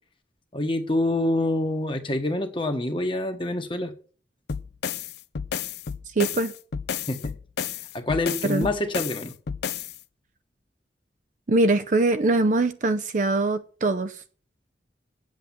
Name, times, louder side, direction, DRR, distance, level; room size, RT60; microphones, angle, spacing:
voice 1, 0.5-3.9 7.1-7.3 7.9-9.3, left 1 dB, 30° left, 1.2 m, -26 dB
sound 1, 4.5-10.0, left 7 dB, 60° left, 0.5 m, -32 dB
voice 2, 6.2-6.5 8.4-8.7 11.5-14.2, right 2 dB, 45° right, 0.6 m, -22 dB
8.4 x 7.8 x 7.1 m
head